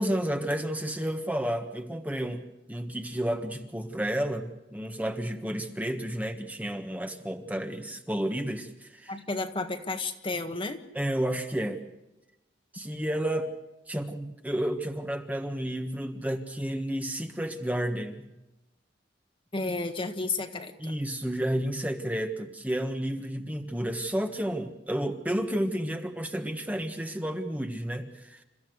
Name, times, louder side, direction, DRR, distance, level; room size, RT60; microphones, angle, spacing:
voice 1, 0.0-9.1 10.9-11.8 12.7-13.6 13.9-18.2 20.8-28.4, right 1 dB, 10° right, 6 dB, 1.5 m, -31 dB
voice 2, 9.1-10.8 19.5-20.9, left 3 dB, 30° left, 7 dB, 1.6 m, -32 dB
29.0 x 14.5 x 7.9 m, 0.95 s
head